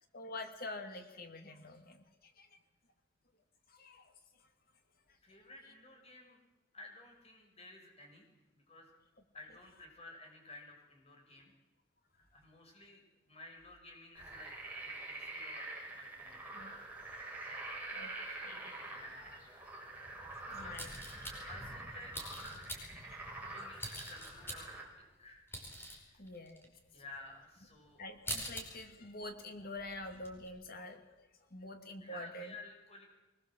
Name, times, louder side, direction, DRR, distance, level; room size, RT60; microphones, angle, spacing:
voice 1, 0.1-2.6 3.7-4.1 4.4-4.5 5.1-5.2 16.5-16.7 17.9-18.9 20.0-20.1 20.5-21.0 22.9-23.2 26.2-26.7 26.9-27.0 28.0-32.5, left 2 dB, 50° left, 6 dB, 2.6 m, -47 dB
voice 2, 5.2-6.4 6.7-8.3 8.5-8.9 9.3-11.5 12.2-14.5 14.8-16.5 18.9-19.8 20.5-20.7 21.5-22.1 23.5-24.9 25.2-25.5 26.0-26.2 26.9-28.0 32.0-33.1, left 2 dB, 35° left, 2 dB, 6.2 m, -54 dB
sound 1, 14.2-24.8, right 2 dB, 10° right, 5.4 m, -46 dB
sound 2, 20.7-21.6 22.1-23.0 23.8-24.9 25.2-26.0 26.3-26.6 27.2-27.3 27.7-27.8 28.0-28.6 29.0-29.2 29.5-30.5, equal, 10° left, 4.8 m, -44 dB
23.5 x 21.0 x 7.6 m, 1.0 s
head